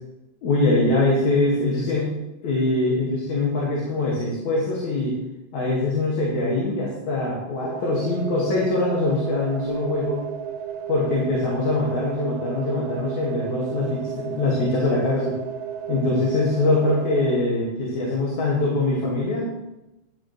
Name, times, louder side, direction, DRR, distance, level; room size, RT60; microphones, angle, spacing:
voice 1, 0.4-2.1 2.4-5.2 5.5-10.3 10.9-15.3 15.9-19.5, left 2 dB, 60° left, -4 dB, 3.1 m, -23 dB
sound 1, 7.6-17.4, right 8 dB, 90° right, 2.5 m, -33 dB
12.5 x 10.0 x 3.1 m, 0.97 s
omnidirectional pair, 3.8 m